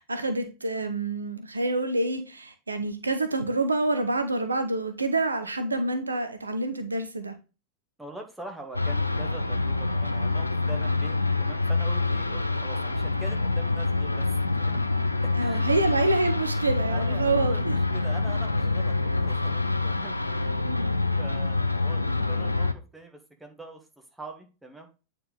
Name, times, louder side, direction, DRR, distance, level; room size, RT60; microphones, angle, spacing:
voice 1, 0.0-7.4 15.4-17.8 20.6-20.9, right 2 dB, 80° right, 0.8 m, -27 dB
voice 2, 8.0-14.9 15.2-15.7 16.9-20.7 21.2-23.9 24.1-24.9, right 2 dB, 5° right, 1.6 m, -44 dB
sound 1, 8.7-22.7, left 3 dB, 85° left, 0.5 m, -26 dB
8.7 x 4.2 x 3.4 m
figure-of-eight pair, 90°, 0 cm